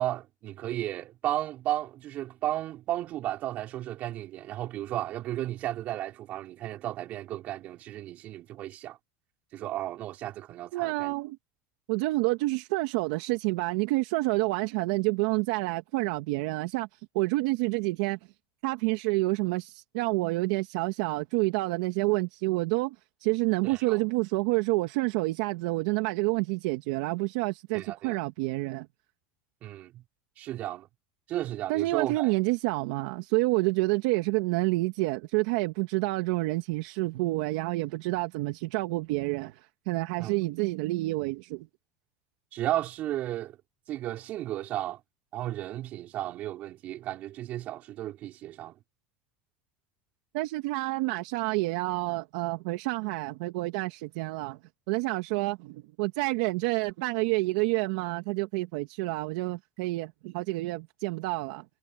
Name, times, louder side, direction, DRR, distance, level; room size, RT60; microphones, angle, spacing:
voice 1, 0.0-9.0 9.5-11.1 23.6-24.0 27.7-28.2 29.6-30.0 30.4-30.9 31.3-32.3 40.2-40.3 42.5-43.6 43.9-45.0 45.3-48.8, right 14 dB, 50° right, 5.2 m, -34 dB
voice 2, 10.7-11.4 11.9-16.9 17.2-18.2 18.6-23.0 23.2-28.9 31.7-39.6 39.9-41.7 50.3-54.6 54.9-61.6, right 22 dB, 75° right, 1.8 m, -28 dB
supercardioid pair, 115°, 3 cm